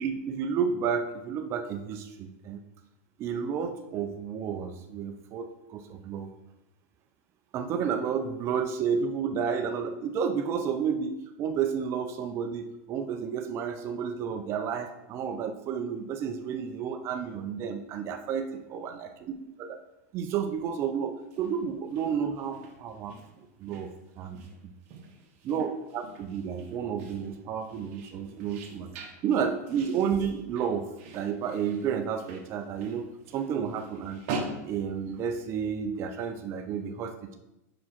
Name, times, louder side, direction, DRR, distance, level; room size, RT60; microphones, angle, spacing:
voice 1, 0.0-2.6 3.2-6.3 7.5-19.8 20.1-23.2 23.6-23.9 24.2-24.5 25.5-28.9 29.2-30.9 31.1-34.2 34.6-37.3, right 7 dB, 35° right, 6 dB, 0.5 m, -31 dB
sound 1, 21.2-35.7, right 3 dB, 55° right, 1.3 m, -44 dB
5.1 x 4.8 x 5.9 m, 0.93 s
supercardioid pair, 150°, 8 cm